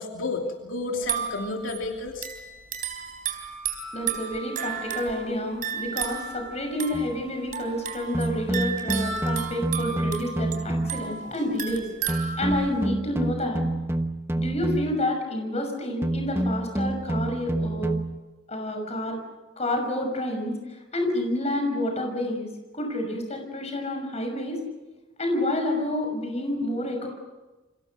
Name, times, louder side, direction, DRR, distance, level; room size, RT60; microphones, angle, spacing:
voice 1, 0.0-2.3, left 2 dB, 80° left, 2 dB, 3.0 m, -31 dB
sound 1, 1.0-12.9, right 7 dB, 45° right, 3.9 m, -34 dB
voice 2, 3.9-11.9 12.4-13.6 14.3-18.0 18.5-19.2 19.6-20.6 20.9-24.6 25.2-27.1, left 1 dB, 35° left, 4 dB, 6.2 m, -29 dB
sound 2, 6.9-7.2 8.1-11.2 12.1-15.1 16.0-18.2, right 1 dB, 15° right, 1.1 m, -28 dB
29.0 x 25.5 x 6.6 m, 1.2 s
head